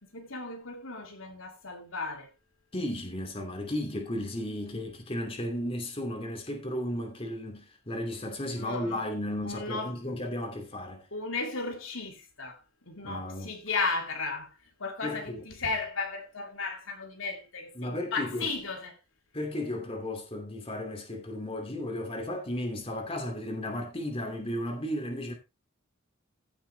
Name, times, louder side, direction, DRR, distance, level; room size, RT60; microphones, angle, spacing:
voice 1, 0.0-2.3 8.6-9.0 9.4-9.9 11.1-12.6 12.9-14.5 14.8-19.0, left 4 dB, 75° left, 2.7 m, -35 dB
voice 2, 2.7-11.1 13.0-13.5 15.0-15.5 17.8-18.5 19.3-25.3, left 1 dB, 25° left, 2.7 m, -34 dB
15.5 x 7.2 x 3.4 m
head